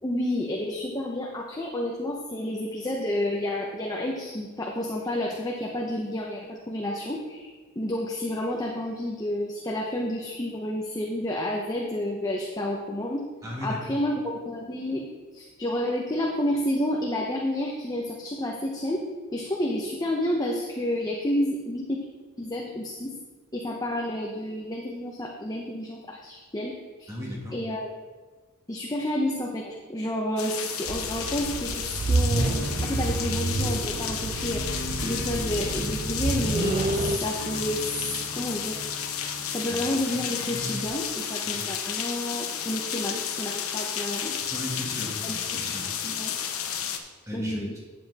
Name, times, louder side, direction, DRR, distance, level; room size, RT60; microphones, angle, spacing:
voice 1, 0.0-13.2 13.6-15.1 15.3-19.0 19.3-22.0 22.4-23.1 23.5-27.1 27.5-27.9 28.7-34.7 35.0-37.8 38.3-38.8 39.5-44.4 45.2-45.6 46.0-46.3 47.3-47.7, left 1 dB, 20° left, -1 dB, 0.9 m, -30 dB
voice 2, 13.4-13.8 27.1-27.6 36.9-37.1 39.7-39.9 41.5-41.7 44.5-45.9 47.3-47.6, equal, 15° right, -4 dB, 2.4 m, -36 dB
sound 1, 30.4-47.0, left 8 dB, 80° left, 0.9 m, -32 dB
sound 2, 30.9-37.2, right 3 dB, 35° right, 0.4 m, -29 dB
sound 3, 32.6-40.9, equal, 65° left, 1.9 m, -38 dB
9.5 x 7.4 x 4.2 m, 1.3 s
head